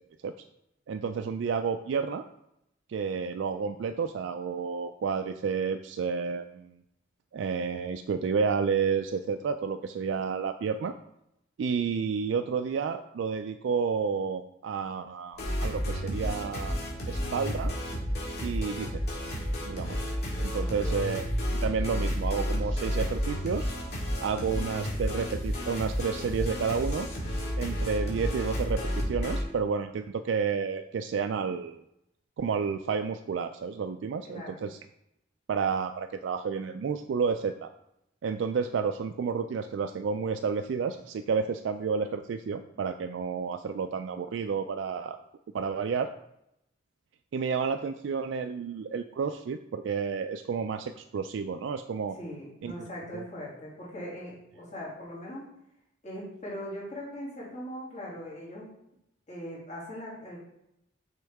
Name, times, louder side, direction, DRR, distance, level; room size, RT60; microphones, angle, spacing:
voice 1, 0.9-2.2 2.9-6.8 7.3-10.9 11.6-16.8 17.1-17.7 18.4-19.2 19.7-20.0 20.4-21.2 21.6-23.7 24.2-27.1 27.6-31.8 32.4-34.8 35.5-37.7 38.2-45.2 45.5-46.1 47.3-52.2 52.6-52.9 53.1-53.2, right 5 dB, 70° right, 8 dB, 0.3 m, -31 dB
sound 1, 15.3-29.4, equal, 55° left, 2.1 m, -31 dB
voice 2, 20.6-21.0 34.3-34.6 52.2-55.4 56.0-58.7 59.3-60.4, equal, 40° left, -6 dB, 2.5 m, -40 dB
6.2 x 5.5 x 3.5 m, 0.82 s
head